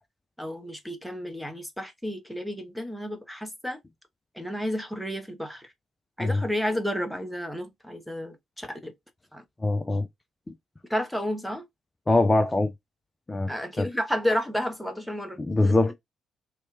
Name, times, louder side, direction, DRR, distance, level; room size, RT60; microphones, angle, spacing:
voice 1, 0.4-3.8 4.3-5.7 6.2-8.9 9.3-9.4 10.9-11.6 13.5-15.8, equal, ahead, 0.8 m, -31 dB
voice 2, 9.6-10.1 12.1-12.7 13.3-13.5 13.8-13.9 15.4-15.9, left 2 dB, 20° left, 0.4 m, -22 dB
2.9 x 2.2 x 2.6 m
figure-of-eight pair, 45°, 0 cm